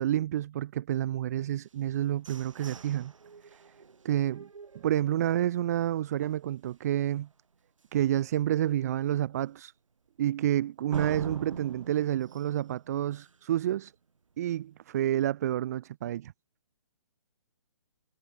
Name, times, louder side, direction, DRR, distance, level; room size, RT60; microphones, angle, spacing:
voice 1, 0.0-3.1 4.0-4.5 4.8-7.3 7.9-9.7 10.2-13.9 14.4-16.3, right 12 dB, 30° right, 1.6 m, -29 dB
sound 1, 1.6-5.5 6.0-6.1 6.4-6.8 7.2-7.3 7.8-7.9 10.9-13.6, right 5 dB, 80° right, 7.1 m, -43 dB
hypercardioid pair, 170°, 16 cm